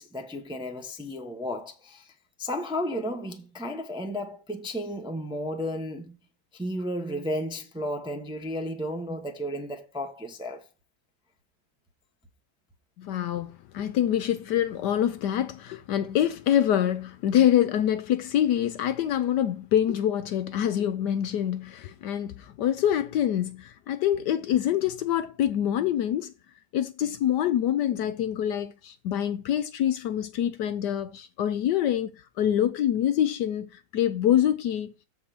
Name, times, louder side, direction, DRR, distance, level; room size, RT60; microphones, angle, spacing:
voice 1, 0.0-2.1 2.4-6.2 6.5-10.7, equal, 5° right, 0.6 m, -33 dB
voice 2, 13.0-26.3 26.7-34.9, left 10 dB, 70° left, 1.1 m, -25 dB
7.4 x 4.2 x 6.8 m
omnidirectional pair, 2.1 m